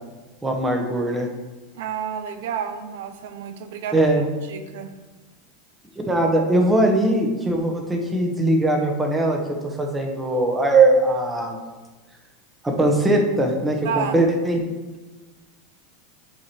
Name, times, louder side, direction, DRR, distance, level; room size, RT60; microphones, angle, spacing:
voice 1, 0.4-1.3 3.9-4.3 6.0-9.4 9.8-11.6 12.6-14.6, right 2 dB, 10° right, 1 dB, 0.8 m, -20 dB
voice 2, 1.7-4.0 4.5-4.9 13.8-14.2, right 8 dB, 75° right, 9 dB, 0.5 m, -30 dB
10.5 x 4.7 x 3.0 m, 1.2 s
supercardioid pair, 155°, 0 cm